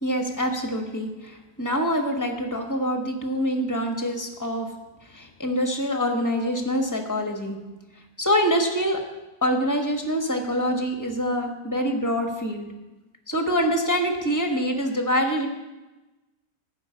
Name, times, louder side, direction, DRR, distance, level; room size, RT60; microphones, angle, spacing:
voice 1, 0.0-4.7 5.0-7.6 8.2-9.0 9.4-12.7 13.3-15.5, equal, 10° left, 3 dB, 1.2 m, -25 dB
11.5 x 5.2 x 8.4 m, 1.1 s
omnidirectional pair, 1.7 m